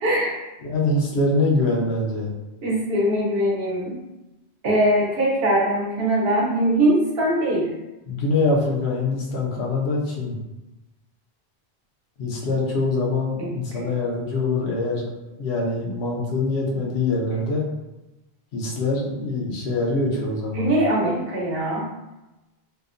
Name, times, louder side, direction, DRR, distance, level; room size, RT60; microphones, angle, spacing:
voice 1, 0.0-0.4 2.6-3.9 4.6-7.7 13.4-13.8 20.6-21.9, right 1 dB, 65° right, -3 dB, 0.9 m, -22 dB
voice 2, 0.6-2.3 8.1-10.4 12.2-15.0 15.4-17.6 18.5-20.7, left 2 dB, 85° left, -2 dB, 0.9 m, -24 dB
2.8 x 2.0 x 2.4 m, 1.0 s
omnidirectional pair, 1.1 m